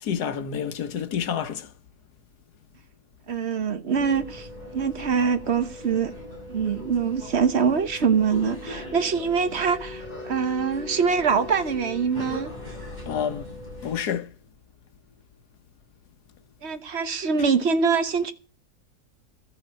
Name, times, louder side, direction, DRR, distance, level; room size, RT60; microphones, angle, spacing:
voice 1, 0.1-1.7 13.1-13.5 13.8-14.3, left 8 dB, 80° left, 1.5 m, -28 dB
voice 2, 3.3-4.5 4.7-6.1 6.5-12.5 16.6-18.3, right 6 dB, 45° right, 1.1 m, -24 dB
sound 1, 3.9-14.0, left 1 dB, 25° right, 7.4 m, -39 dB
13.5 x 6.6 x 8.8 m
omnidirectional pair, 1.7 m